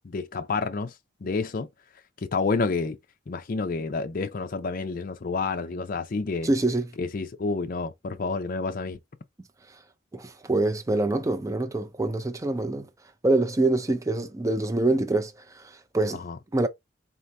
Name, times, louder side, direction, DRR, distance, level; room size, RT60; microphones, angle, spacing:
voice 1, 0.0-0.9 1.2-1.7 2.2-3.0 3.3-6.5 7.0-9.0 16.1-16.4, left 4 dB, 45° left, 0.5 m, -29 dB
voice 2, 6.4-6.9 10.1-12.9 13.2-16.2 16.5-16.7, right 2 dB, 15° right, 0.4 m, -25 dB
4.1 x 2.7 x 3.3 m
head